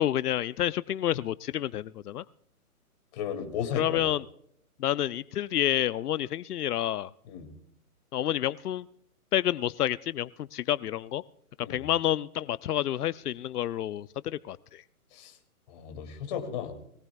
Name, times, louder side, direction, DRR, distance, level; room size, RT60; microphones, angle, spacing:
voice 1, 0.0-2.2 3.8-4.2 4.8-7.1 8.1-8.9 9.3-11.2 11.6-14.8, left 12 dB, 85° left, 17 dB, 0.6 m, -29 dB
voice 2, 3.1-4.2 7.3-7.5 11.6-11.9 15.1-15.4 15.7-16.7, left 7 dB, 30° left, 5 dB, 2.3 m, -35 dB
22.5 x 17.5 x 2.3 m, 0.70 s
hypercardioid pair, 160°, 45 cm